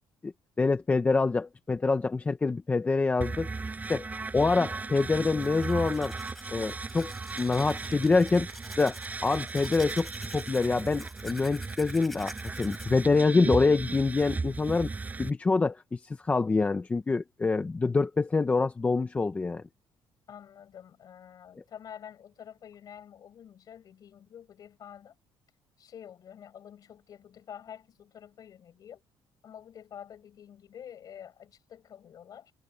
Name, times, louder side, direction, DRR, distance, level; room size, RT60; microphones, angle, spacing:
voice 1, 0.6-3.5 3.9-6.1 6.5-8.5 8.8-12.3 12.6-14.9 15.2-19.6, left 3 dB, 15° left, 0.8 m, -26 dB
sound 1, 3.2-15.3, right 4 dB, 15° right, 6.1 m, -36 dB
Domestic sounds home sounds, 5.2-12.9, equal, ahead, 6.3 m, -48 dB
voice 2, 20.3-25.2 25.8-29.0 29.4-32.5, left 9 dB, 45° left, 5.0 m, -48 dB
cardioid pair, 165°, 9 cm